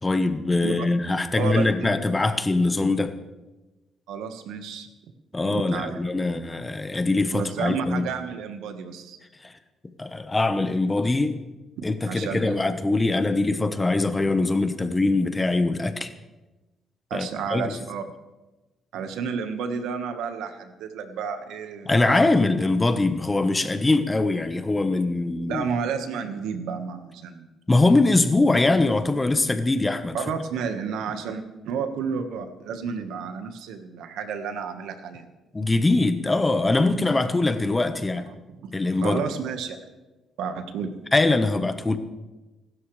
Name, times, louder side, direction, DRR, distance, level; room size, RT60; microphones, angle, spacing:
voice 1, 0.0-3.1 5.3-8.1 9.4-9.5 10.0-11.4 11.8-16.1 17.1-17.6 21.8-25.6 27.7-30.2 35.5-38.3 38.7-39.2 41.1-42.0, left 2 dB, 20° left, 9 dB, 1.2 m, -22 dB
voice 2, 1.4-1.9 4.1-4.9 5.4-6.0 7.3-9.2 11.8-12.5 17.1-18.0 18.9-22.3 25.5-27.5 30.1-35.3 36.9-37.1 38.3-38.7 39.0-39.8 40.4-41.0, right 6 dB, 90° right, 7 dB, 1.5 m, -31 dB
25.0 x 12.5 x 3.3 m, 1.1 s
cardioid pair, 90°, 0 cm